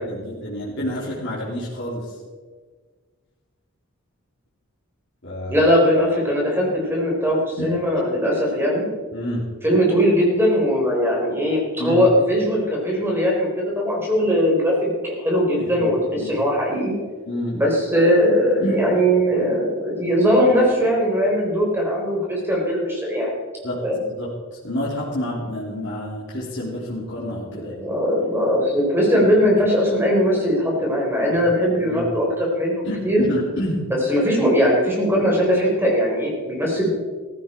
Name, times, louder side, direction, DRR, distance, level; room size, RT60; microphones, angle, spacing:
voice 1, 0.0-2.1 5.2-5.6 7.6-7.8 9.1-9.5 11.8-12.0 15.6-16.3 17.3-17.6 18.6-18.9 23.6-23.8 24.1-27.7 31.3-31.4 31.8-32.0 32.8-33.9, equal, 55° left, -6 dB, 3.1 m, -28 dB
voice 2, 5.5-8.9 9.6-16.9 17.5-23.4 23.8-24.0 27.6-33.2 34.1-36.9, equal, 10° right, -2 dB, 4.0 m, -20 dB
15.0 x 15.0 x 4.4 m, 1.5 s
head